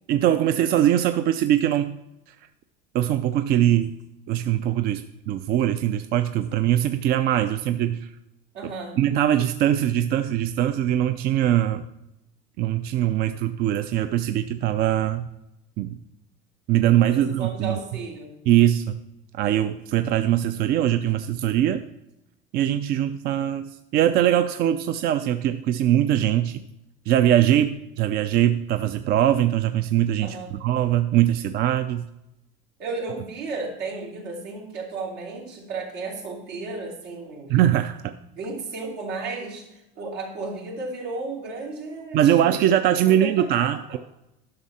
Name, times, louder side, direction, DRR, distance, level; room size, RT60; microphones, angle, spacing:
voice 1, 0.1-2.0 2.9-3.9 4.3-8.1 8.6-8.7 9.0-11.8 12.6-15.3 15.8-16.0 16.7-17.8 18.5-19.0 19.3-21.8 22.5-26.6 27.1-32.1 37.5-38.1 42.1-44.0, right 11 dB, 50° right, 10 dB, 0.4 m, -22 dB
voice 2, 8.5-9.0 17.1-18.3 30.2-30.6 32.8-37.6 38.4-42.6 43.1-43.5 43.9-44.0, right 3 dB, 80° right, -2 dB, 2.9 m, -34 dB
11.0 x 6.4 x 4.2 m, 0.89 s
cardioid pair, 145°, 21 cm